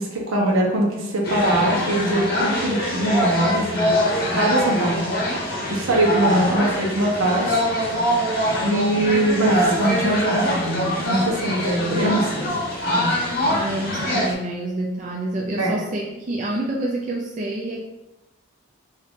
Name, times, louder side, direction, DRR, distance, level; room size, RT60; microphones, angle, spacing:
voice 1, 0.0-3.9 4.3-5.0 5.7-7.6 8.6-12.5 12.9-13.3 15.6-15.7, right 1 dB, 75° right, -1 dB, 1.0 m, -22 dB
sound 1, 1.2-14.3, equal, 45° left, 0.9 m, -23 dB
voice 2, 13.1-17.8, right 1 dB, 35° right, -2 dB, 0.4 m, -28 dB
3.6 x 2.7 x 3.6 m, 1.0 s
head